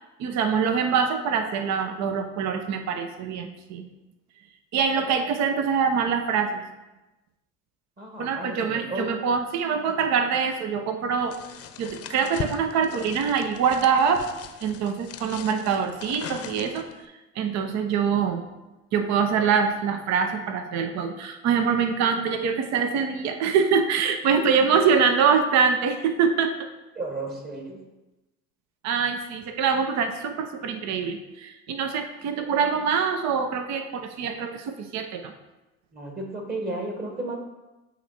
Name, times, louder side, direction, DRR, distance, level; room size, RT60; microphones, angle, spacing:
voice 1, 0.2-3.8 4.7-6.6 8.2-11.4 11.8-14.3 14.6-16.9 17.4-18.4 18.9-26.5 28.8-35.3, right 6 dB, 55° right, 7 dB, 0.7 m, -24 dB
voice 2, 8.0-9.2 24.3-24.4 27.0-27.8 35.9-37.4, right 2 dB, 30° right, 2 dB, 1.7 m, -33 dB
sound 1, 11.3-17.0, left 8 dB, 45° left, 0.7 m, -39 dB
8.4 x 3.0 x 4.3 m, 1.1 s
hypercardioid pair, 70°, 33 cm